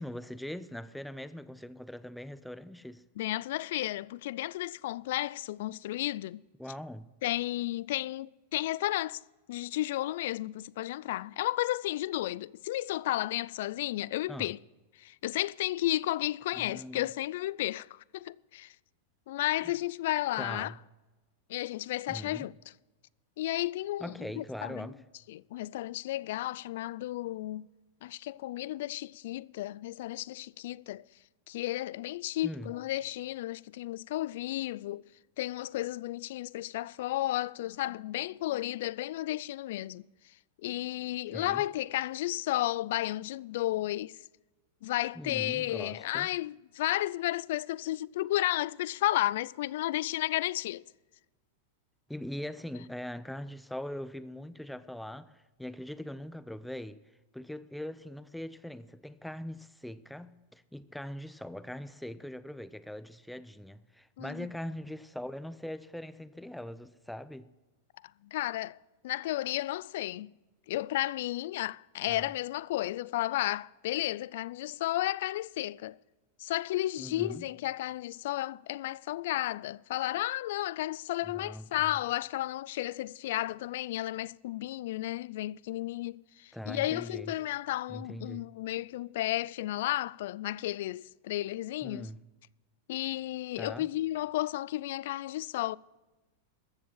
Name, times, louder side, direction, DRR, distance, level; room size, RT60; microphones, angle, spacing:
voice 1, 0.0-3.1 6.6-7.1 14.3-14.5 16.5-17.1 19.6-19.7 20.4-20.8 22.1-22.5 24.0-25.0 32.4-32.8 41.3-41.6 45.2-46.3 52.1-57.0 57.3-67.5 72.1-72.3 77.0-77.4 81.2-81.9 86.5-87.4 87.9-88.5 91.8-92.3 93.6-93.9, left 1 dB, ahead, 0.5 m, -41 dB
voice 2, 3.2-6.4 7.2-9.2 9.5-14.6 15.0-18.7 19.3-20.7 21.5-22.5 23.4-24.9 25.3-27.7 28.0-31.0 31.5-35.0 35.4-40.0 40.6-44.2 44.8-50.8 64.2-64.5 68.2-68.8 69.0-70.3 70.7-76.0 76.4-92.1 92.9-95.8, left 15 dB, 65° left, 0.3 m, -33 dB
14.5 x 7.1 x 7.2 m
supercardioid pair, 140°, 0 cm